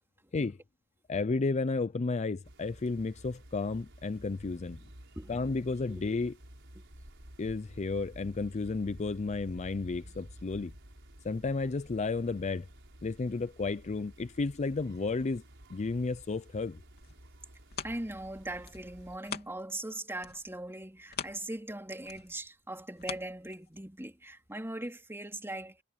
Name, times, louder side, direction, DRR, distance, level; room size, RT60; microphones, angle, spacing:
voice 1, 1.1-4.8 5.3-6.3 7.4-10.7 11.2-12.7 13.0-15.4 15.7-16.8, left 3 dB, 30° left, 0.4 m, -32 dB
sound 1, 2.4-19.2, equal, 60° right, 5.5 m, -52 dB
sound 2, 16.9-19.9 20.2-24.0 24.5-24.6, left 7 dB, 50° left, 3.0 m, -44 dB
voice 2, 17.8-25.8, right 1 dB, 10° right, 3.7 m, -40 dB
head